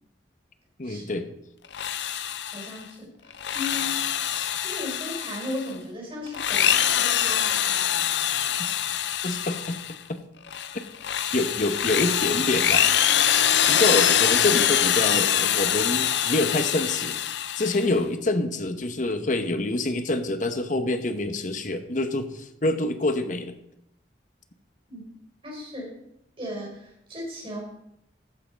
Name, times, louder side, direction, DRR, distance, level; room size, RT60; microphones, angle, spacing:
voice 1, 0.8-1.2 9.2-9.8 11.3-12.9 13.7-17.2 17.5-23.5, left 2 dB, 45° left, 8 dB, 0.9 m, -26 dB
Drill, 1.6-2.8 3.3-5.7 6.3-10.0 10.5-17.9, left 10 dB, 75° left, 0.6 m, -24 dB
voice 2, 2.5-4.1 4.6-7.7 24.9-25.0 25.4-26.0 26.4-27.6, left 1 dB, 30° right, -1 dB, 4.1 m, -36 dB
14.0 x 5.7 x 5.2 m, 0.81 s
head